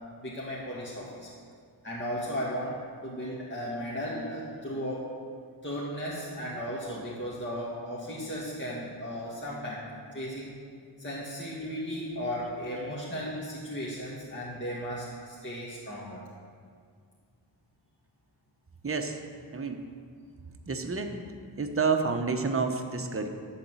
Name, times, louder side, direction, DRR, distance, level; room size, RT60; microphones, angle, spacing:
voice 1, 0.2-1.3 1.8-5.1 5.6-10.5 11.0-16.2, equal, 25° left, -7 dB, 2.0 m, -35 dB
voice 2, 18.8-19.2 19.5-19.8 20.7-21.2 21.6-23.3, right 4 dB, 30° right, 4 dB, 1.0 m, -29 dB
12.0 x 4.1 x 7.7 m, 2.1 s
cardioid pair, 40°, 44 cm